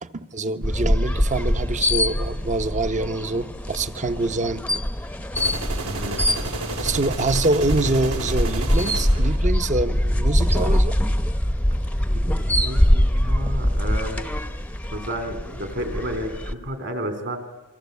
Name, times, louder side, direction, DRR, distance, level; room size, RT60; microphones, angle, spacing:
voice 1, 0.0-4.7 6.8-11.0, right 2 dB, 35° right, 11 dB, 1.0 m, -25 dB
sound 1, 0.6-16.5, equal, 5° left, 0.8 m, -23 dB
sound 2, 5.4-9.4, right 2 dB, 75° right, 4.0 m, -31 dB
voice 2, 5.8-6.3 12.1-14.3 14.9-17.4, equal, 55° right, 9 dB, 3.7 m, -31 dB
28.0 x 24.0 x 8.3 m, 1.1 s
head